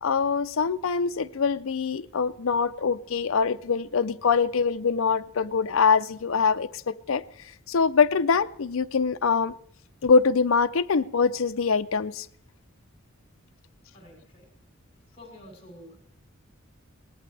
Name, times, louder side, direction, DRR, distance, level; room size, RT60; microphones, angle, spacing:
voice 1, 0.0-7.2 7.7-9.5 10.0-12.3, left 5 dB, 75° left, 0.5 m, -24 dB
voice 2, 13.9-14.5 15.1-16.0, left 1 dB, 30° left, 7.5 m, -48 dB
23.0 x 18.5 x 3.3 m
head